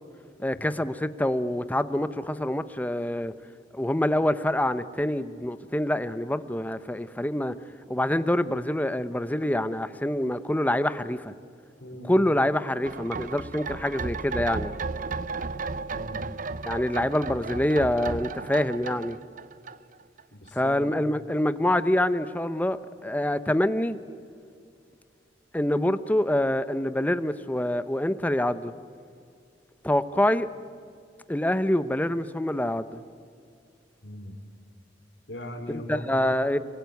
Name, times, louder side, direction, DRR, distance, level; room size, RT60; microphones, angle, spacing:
voice 1, 0.4-3.3 3.7-7.5 7.9-11.3 12.1-14.7 16.6-19.2 20.5-24.0 25.5-28.7 29.8-30.5 31.3-33.0 35.9-36.6, left 1 dB, 10° left, 0.8 m, -26 dB
voice 2, 11.8-12.1 15.9-16.3 20.3-20.8 34.0-34.3 35.3-36.3, left 1 dB, 70° left, 3.1 m, -39 dB
sound 1, 12.8-20.2 20.5-20.6, right 4 dB, 45° right, 0.6 m, -34 dB
26.0 x 24.0 x 9.4 m
head